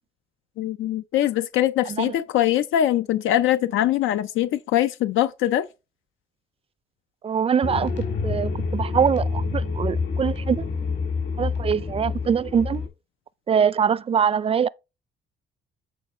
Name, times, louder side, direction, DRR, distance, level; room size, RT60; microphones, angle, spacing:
voice 1, 0.6-5.7, left 12 dB, 80° left, 0.5 m, -22 dB
voice 2, 7.2-7.9 8.2-10.7 11.4-12.8 13.5-14.7, right 7 dB, 30° right, 0.4 m, -23 dB
sound 1, 7.6-12.9, left 4 dB, 65° left, 3.1 m, -27 dB
8.5 x 4.3 x 4.3 m
cardioid pair, 90°, 20 cm